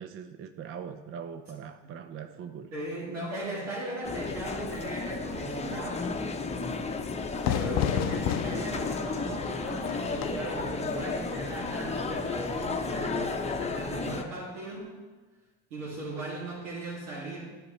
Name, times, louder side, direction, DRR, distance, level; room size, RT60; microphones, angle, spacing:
voice 1, 0.0-2.7, right 7 dB, 35° right, 9 dB, 0.5 m, -41 dB
voice 2, 2.7-6.1 7.3-14.9 15.7-17.6, right 2 dB, 80° right, -4 dB, 2.6 m, -38 dB
sound 1, 4.0-14.2, left 4 dB, 15° left, 0.8 m, -33 dB
Fire / Fireworks, 7.4-13.0, left 10 dB, 45° left, 0.5 m, -34 dB
11.5 x 5.2 x 3.2 m, 1.3 s
hypercardioid pair, 70°, 37 cm